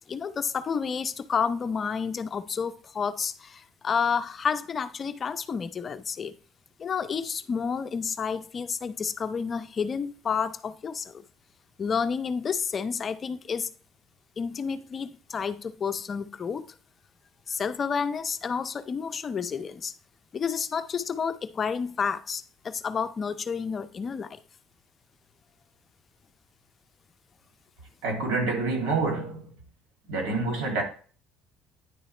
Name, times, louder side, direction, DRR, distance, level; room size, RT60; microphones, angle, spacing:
voice 1, 0.1-6.3 6.8-11.2 11.8-13.7 14.4-16.7 17.5-19.9 20.3-24.4, left 6 dB, 35° left, 0.5 m, -30 dB
voice 2, 28.0-29.5 30.1-30.8, right 3 dB, 85° right, 2.4 m, -27 dB
9.8 x 3.9 x 3.2 m
cardioid pair, 120°, 0 cm